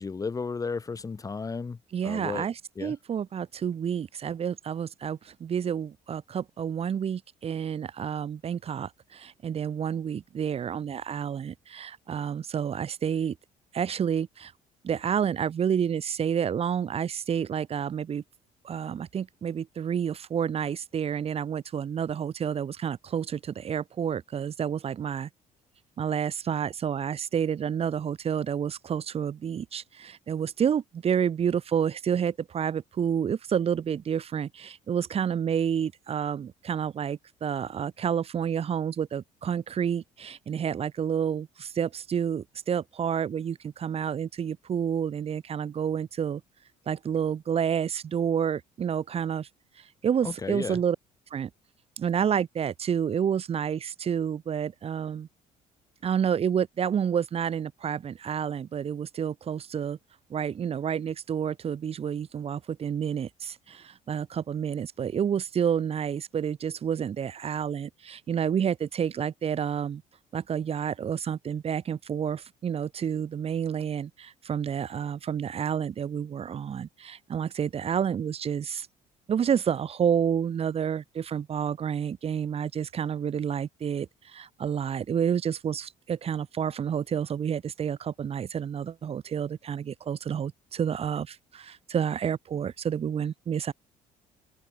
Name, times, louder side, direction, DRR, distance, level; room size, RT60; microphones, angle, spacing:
voice 1, 0.0-1.8 2.0-2.5 2.7-2.9 50.2-50.8, left 4 dB, 25° left, 1.7 m, -33 dB
voice 2, 1.9-13.4 13.7-14.5 14.8-18.2 18.6-25.3 26.0-46.4 46.9-49.5 50.0-51.0 51.3-51.5 52.0-55.3 56.0-60.0 60.3-70.0 70.3-78.9 79.3-93.7, right 8 dB, 45° right, 3.3 m, -29 dB
open air
cardioid pair, 105°, 14 cm